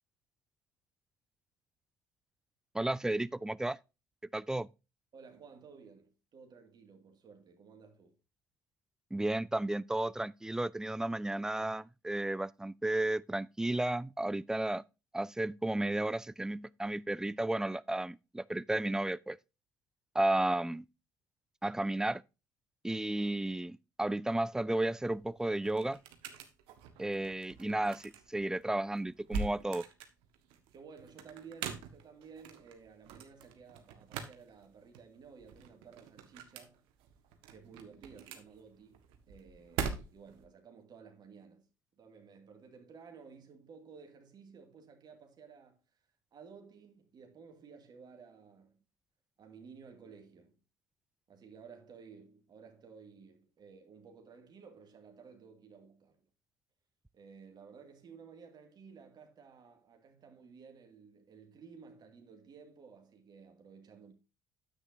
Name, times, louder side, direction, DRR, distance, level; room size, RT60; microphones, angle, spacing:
voice 1, 2.7-3.8 4.3-4.7 9.1-14.8 15.1-19.4 20.1-20.8 21.6-22.2 22.8-26.0 27.0-29.8, right 1 dB, 5° right, 0.4 m, -33 dB
voice 2, 5.1-8.2 30.7-36.8 37.5-41.7 42.0-46.0 46.3-48.8 49.4-50.6 51.3-56.3 57.1-64.1, right 5 dB, 45° right, 2.4 m, -55 dB
sound 1, 24.9-40.4, right 6 dB, 70° right, 1.5 m, -44 dB
9.7 x 8.8 x 2.7 m
hypercardioid pair, 60°, 9 cm